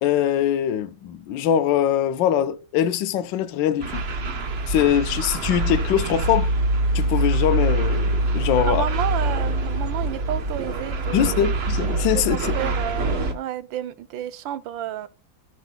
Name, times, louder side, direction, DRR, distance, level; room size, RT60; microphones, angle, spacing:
voice 1, 0.0-4.0 4.7-6.5 6.9-8.8 11.1-12.5, left 10 dB, 70° left, 1.3 m, -22 dB
sound 1, 3.8-13.3, right 2 dB, 40° right, 0.9 m, -24 dB
voice 2, 8.6-11.5 12.1-15.1, right 11 dB, 75° right, 1.4 m, -31 dB
17.5 x 6.0 x 2.2 m
omnidirectional pair, 2.1 m